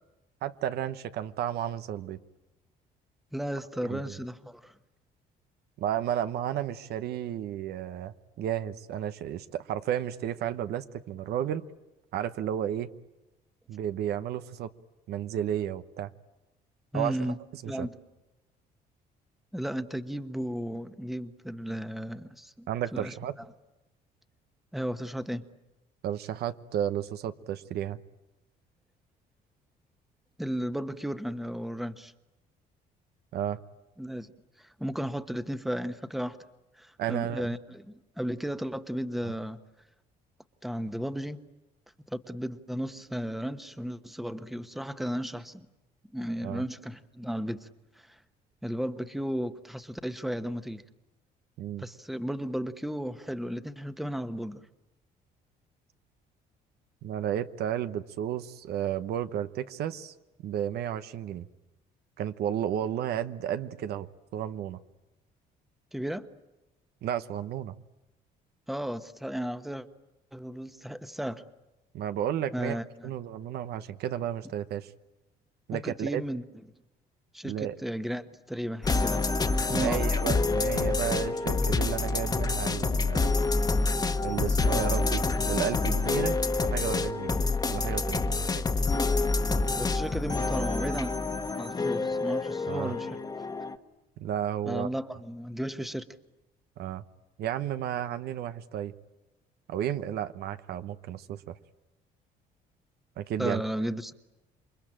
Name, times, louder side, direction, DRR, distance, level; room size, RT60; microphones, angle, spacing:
voice 1, 0.4-2.2 3.8-4.1 5.8-11.6 12.1-12.9 13.7-14.7 15.1-16.1 16.9-17.9 22.7-23.4 26.0-28.0 33.3-33.6 37.0-37.6 39.2-39.3 46.4-46.6 51.6-51.8 57.0-60.1 60.4-61.5 62.2-64.8 67.0-67.8 71.9-72.8 73.0-74.9 75.7-76.2 77.4-77.8 79.7-83.3 84.2-87.4 87.7-88.5 92.7-93.0 94.2-94.9 96.8-97.0 97.4-98.9 99.7-101.6 103.2-103.6, right 10 dB, 70° right, 11 dB, 1.1 m, -32 dB
voice 2, 3.3-4.7 16.9-17.4 17.6-17.9 19.5-23.1 24.7-25.4 30.4-32.1 34.0-34.3 34.6-36.4 36.8-37.9 38.2-39.6 40.6-41.4 42.1-45.7 46.1-47.7 48.0-48.2 48.6-50.8 51.8-54.6 65.9-66.3 68.7-69.9 70.3-71.4 72.5-73.1 75.7-76.4 77.3-79.2 79.7-80.1 89.7-91.1 91.6-93.2 94.7-96.0 103.4-104.1, equal, ahead, 10 dB, 1.2 m, -34 dB
sound 1, 78.8-93.7, left 3 dB, 25° left, 1.3 m, -27 dB
28.0 x 23.0 x 8.9 m, 1.0 s
cardioid pair, 110°, 17 cm